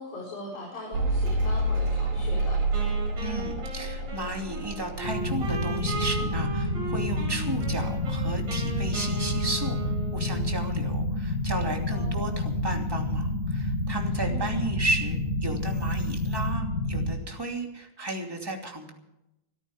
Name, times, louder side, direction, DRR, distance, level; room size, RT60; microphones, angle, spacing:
voice 1, 0.0-2.6 11.9-12.4 14.3-14.6, left 2 dB, 80° left, -5 dB, 6.6 m, -40 dB
Mechanical fan, 0.9-8.9, right 1 dB, 70° right, 6.7 m, -29 dB
Wind instrument woodwind instrument, 2.7-10.6, right 3 dB, 50° right, 8.5 m, -37 dB
voice 2, 3.2-9.8 10.1-18.9, right 2 dB, 10° right, 1 dB, 1.8 m, -34 dB
sound 1, 5.0-17.1, left 1 dB, 20° left, 7.4 m, -29 dB
25.5 x 13.5 x 3.6 m, 0.88 s
omnidirectional pair, 4.1 m